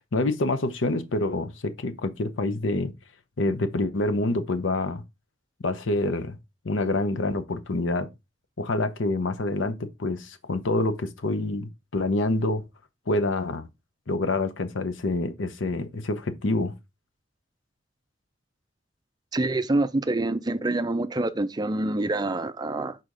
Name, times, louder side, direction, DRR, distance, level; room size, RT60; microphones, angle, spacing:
voice 1, 0.1-2.9 3.4-5.0 5.6-6.4 6.6-8.1 8.6-12.7 13.1-13.7 14.1-16.7, left 2 dB, 85° left, 0.8 m, -27 dB
voice 2, 19.3-23.0, right 2 dB, 20° right, 0.4 m, -26 dB
6.4 x 4.2 x 3.8 m
head